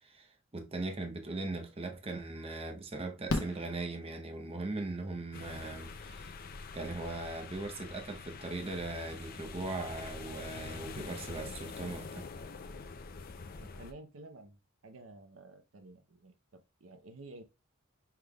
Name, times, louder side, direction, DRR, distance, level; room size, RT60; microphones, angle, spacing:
voice 1, 0.0-6.3 6.7-12.3, right 2 dB, 30° right, 0.7 m, -39 dB
Fireworks, 1.6-1.7 3.3-4.6 6.4-6.5 6.7-6.8, left 2 dB, 85° left, 0.9 m, -36 dB
sound 1, 5.3-13.9, left 4 dB, 45° left, 0.5 m, -45 dB
voice 2, 13.6-14.6 14.8-17.4, right 2 dB, 75° right, 0.7 m, -52 dB
5.7 x 3.3 x 2.3 m
head